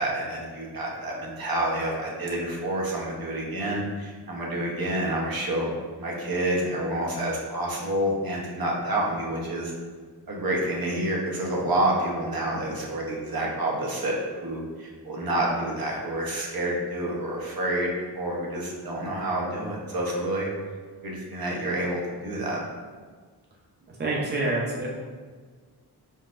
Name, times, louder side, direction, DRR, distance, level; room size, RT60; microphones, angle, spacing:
voice 1, 0.0-5.7 6.0-9.7 10.3-20.5 21.0-22.6, right 1 dB, 60° right, -2 dB, 0.9 m, -28 dB
voice 2, 23.9-24.9, right 2 dB, 25° right, -3 dB, 0.7 m, -27 dB
4.4 x 4.0 x 2.5 m, 1.5 s
wide cardioid pair, 110°, 40 cm